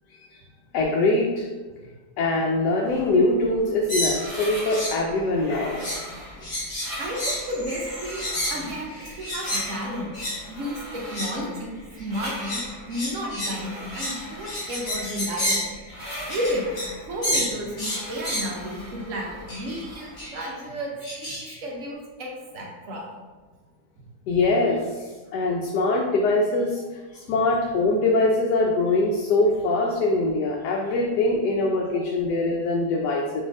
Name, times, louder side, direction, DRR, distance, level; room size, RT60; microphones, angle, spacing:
voice 1, 0.7-1.5 2.2-6.4 24.3-24.8 25.3-33.4, left 2 dB, 75° left, -1 dB, 1.1 m, -23 dB
sound 1, 2.8-20.3, equal, 15° right, 1.4 m, -40 dB
sound 2, 3.9-5.0 5.3-6.1 6.4-9.7 10.1-10.4 11.0-11.4 12.0-17.0 17.2-18.5 19.5-19.8 20.2-20.5 21.0-21.6, left 1 dB, 40° left, 1.5 m, -30 dB
voice 2, 7.0-8.2 8.5-10.1 10.5-12.6 12.9-15.7 16.3-16.7 17.1-20.9 21.2-23.0 31.8-32.0, equal, 60° right, -1 dB, 0.9 m, -32 dB
4.2 x 3.1 x 3.5 m, 1.3 s
omnidirectional pair, 1.8 m